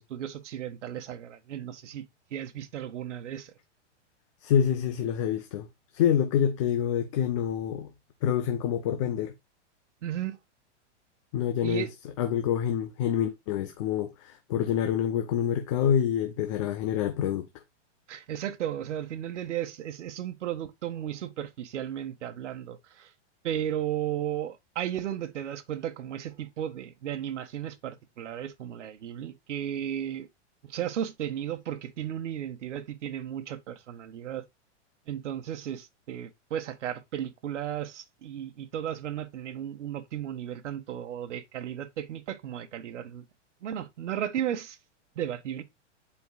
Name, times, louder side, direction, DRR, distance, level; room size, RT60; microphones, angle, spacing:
voice 1, 0.0-2.0 2.3-3.5 10.0-10.4 11.6-11.9 18.1-23.1 23.4-30.3 30.6-34.4 35.1-43.2 43.6-44.8 45.1-45.6, right 10 dB, 75° right, 1.5 m, -34 dB
voice 2, 4.4-5.7 5.9-7.9 8.2-9.3 11.3-11.9 12.2-17.5, left 9 dB, 25° left, 0.5 m, -27 dB
10.5 x 4.8 x 2.2 m
supercardioid pair, 165°, 36 cm